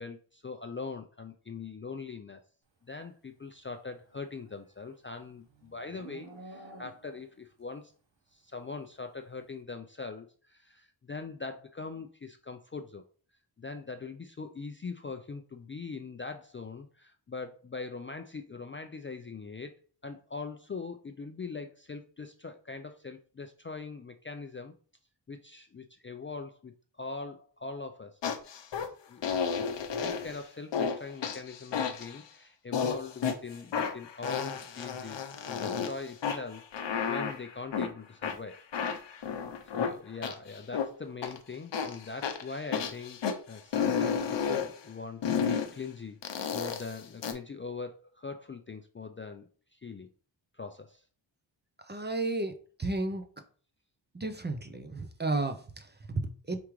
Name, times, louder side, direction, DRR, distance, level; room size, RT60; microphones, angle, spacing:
voice 1, 0.0-2.4 2.9-7.9 8.3-13.0 13.6-19.7 20.0-24.7 25.3-38.6 39.7-43.2 43.5-46.2 46.5-50.1 50.5-51.0, left 4 dB, 30° left, 6 dB, 0.3 m, -42 dB
Livestock farm animals working animals, 4.1-7.4, right 2 dB, 75° right, 1.2 m, -51 dB
sound 1, 28.2-28.9 29.2-30.4 30.7-31.0 31.2-32.2 32.7-33.4 33.7-35.9 36.2-37.9 38.2-40.9 41.2-41.4 41.7-43.3 43.7-44.7 45.2-45.7 46.2-47.3, left 6 dB, 70° left, 0.7 m, -31 dB
voice 2, 51.8-52.5 52.8-53.2 54.1-56.6, right 2 dB, 25° right, 7 dB, 0.5 m, -33 dB
4.8 x 3.5 x 3.1 m, 0.41 s
wide cardioid pair, 85°, 46 cm